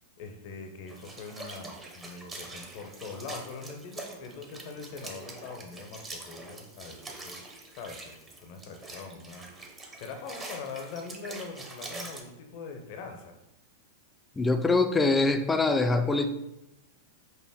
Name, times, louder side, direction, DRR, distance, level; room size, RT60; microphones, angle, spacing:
voice 1, 0.2-7.4 7.7-13.4, left 4 dB, 55° left, 4 dB, 0.6 m, -42 dB
sound 1, 0.9-12.2, right 2 dB, 20° right, 0.8 m, -44 dB
voice 2, 14.4-16.3, left 3 dB, 15° left, 7 dB, 0.4 m, -24 dB
5.4 x 2.1 x 3.5 m, 0.94 s
hypercardioid pair, 100°, 0 cm